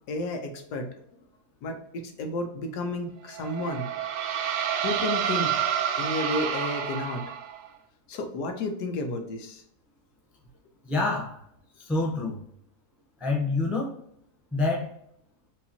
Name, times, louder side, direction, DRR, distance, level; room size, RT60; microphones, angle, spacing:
voice 1, 0.1-0.9 1.6-3.8 4.8-5.6 6.0-7.2 8.1-9.6, left 2 dB, 90° left, 4 dB, 1.4 m, -32 dB
sound 1, 3.3-7.7, right 8 dB, 70° right, 0.7 m, -29 dB
voice 2, 10.8-11.4 11.8-12.4 13.2-13.9 14.5-14.9, left 3 dB, ahead, -2 dB, 0.4 m, -27 dB
4.8 x 3.0 x 2.8 m, 0.71 s
omnidirectional pair, 1.7 m